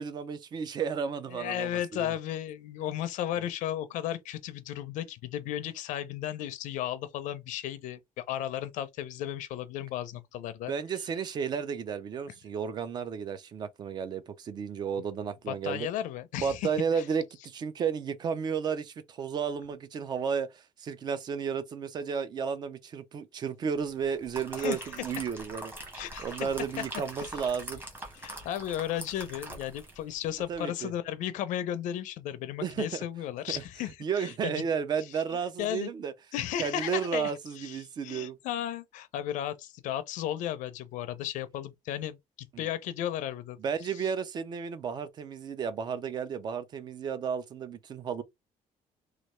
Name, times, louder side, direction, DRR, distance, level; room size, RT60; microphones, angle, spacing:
voice 1, 0.0-2.2 3.4-3.5 10.7-15.9 16.4-25.7 26.2-27.8 30.5-30.9 32.6-33.0 34.0-36.1 36.6-38.4 42.5-42.7 43.6-48.2, right 6 dB, 35° right, 0.4 m, -33 dB
voice 2, 1.3-10.7 15.5-16.7 16.9-17.0 24.6-24.8 25.9-26.5 27.2-27.4 28.1-34.6 35.6-35.9 36.3-44.1, left 11 dB, 75° left, 0.5 m, -35 dB
sound 1, 24.0-30.0 30.4-30.5, right 1 dB, 15° right, 1.1 m, -43 dB
3.2 x 2.3 x 3.0 m
cardioid pair, 165°, 13 cm